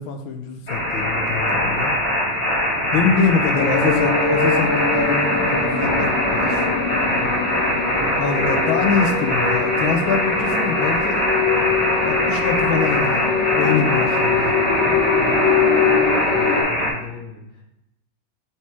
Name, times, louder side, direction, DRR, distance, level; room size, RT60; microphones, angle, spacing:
voice 1, 0.0-1.9 2.9-6.7 8.2-11.2 12.0-14.5, left 5 dB, 90° left, 5 dB, 1.5 m, -24 dB
sound 1, 0.7-16.9, left 1 dB, 40° left, 2.4 m, -22 dB
sound 2, 3.6-16.6, left 4 dB, 55° left, 1.8 m, -23 dB
voice 2, 7.0-7.4 13.6-13.8 14.8-17.6, left 2 dB, 10° left, -4 dB, 1.4 m, -36 dB
4.8 x 4.3 x 4.6 m, 0.85 s
omnidirectional pair, 2.1 m